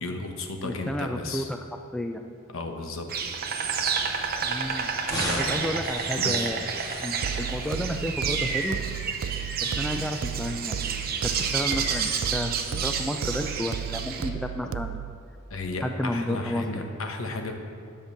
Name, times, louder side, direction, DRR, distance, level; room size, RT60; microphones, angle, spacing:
voice 1, 0.0-1.5 2.5-3.1 5.2-5.8 6.2-6.5 15.5-17.5, left 2 dB, 80° left, 4 dB, 1.1 m, -34 dB
voice 2, 0.6-1.6 1.9-2.2 4.4-4.9 5.4-6.6 7.0-8.8 9.6-10.9 11.4-15.0 15.8-16.9, equal, 5° left, 5 dB, 0.4 m, -31 dB
Insect, 3.1-14.3, right 6 dB, 50° right, 0.7 m, -30 dB
sound 1, 3.2-10.7, equal, 20° left, 1.7 m, -40 dB
sound 2, 7.2-15.2, right 8 dB, 75° right, 0.3 m, -35 dB
10.5 x 5.3 x 7.0 m, 2.3 s
head